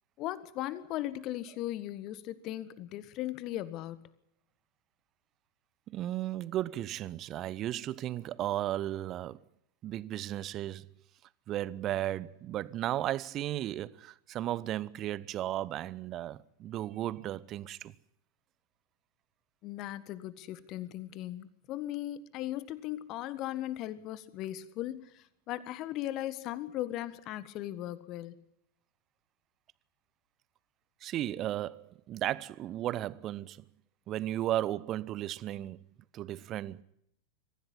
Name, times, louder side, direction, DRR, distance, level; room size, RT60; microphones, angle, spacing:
voice 1, 0.2-4.1 19.6-28.4, left 14 dB, 40° left, 1.5 m, -38 dB
voice 2, 5.9-9.4 9.8-10.9 11.5-17.9 31.0-33.6 34.1-35.8 36.1-36.8, right 13 dB, 35° right, 0.8 m, -35 dB
23.5 x 15.5 x 10.0 m
figure-of-eight pair, 90°, 0 cm